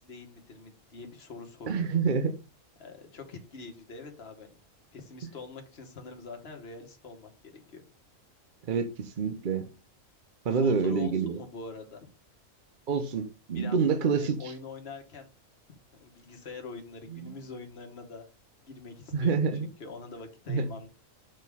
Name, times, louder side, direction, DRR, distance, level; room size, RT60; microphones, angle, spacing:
voice 1, 0.0-1.9 2.8-4.5 4.9-7.8 10.5-12.0 13.5-13.8 14.1-15.3 15.7-18.2 18.6-20.9, left 4 dB, 50° left, 1.5 m, -44 dB
voice 2, 1.7-2.3 8.7-9.7 10.4-11.4 12.9-14.5 17.1-17.4 19.1-19.7 20.5-20.7, right 5 dB, 50° right, 0.7 m, -27 dB
6.5 x 4.2 x 3.5 m
omnidirectional pair, 1.4 m